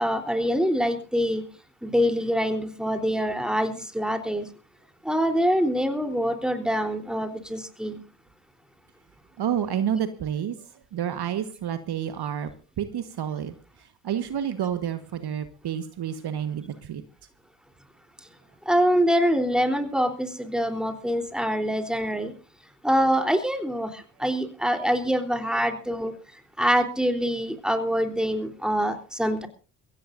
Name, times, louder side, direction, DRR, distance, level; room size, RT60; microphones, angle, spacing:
voice 1, 0.0-1.4 1.8-4.4 5.1-8.0 18.7-22.3 22.8-23.9 24.2-26.1 26.6-29.5, equal, ahead, 5 dB, 3.6 m, -25 dB
voice 2, 9.4-10.5 10.9-12.5 12.8-13.5 14.0-17.0, right 9 dB, 55° right, 10 dB, 1.5 m, -29 dB
23.0 x 16.5 x 2.6 m, 0.36 s
hypercardioid pair, 50°, 48 cm